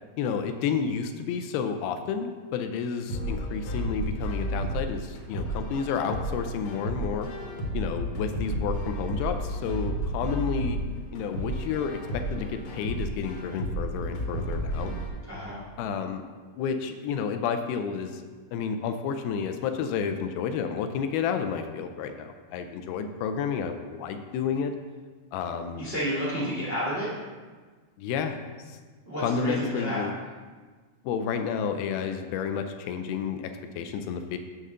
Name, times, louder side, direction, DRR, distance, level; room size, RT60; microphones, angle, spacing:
voice 1, 0.2-7.3 7.7-10.8 11.1-15.0 15.8-16.2 16.6-18.2 18.5-24.7 25.3-25.9 28.0-28.4 28.7-28.8 29.2-30.1 31.1-34.4, left 6 dB, 80° left, 7 dB, 2.3 m, -30 dB
sound 1, 3.1-15.1, right 1 dB, 65° left, 1.9 m, -32 dB
voice 2, 15.3-15.6 25.8-27.1 29.0-30.0, equal, 85° right, -9 dB, 0.5 m, -30 dB
7.9 x 3.7 x 6.6 m, 1.4 s
omnidirectional pair, 4.6 m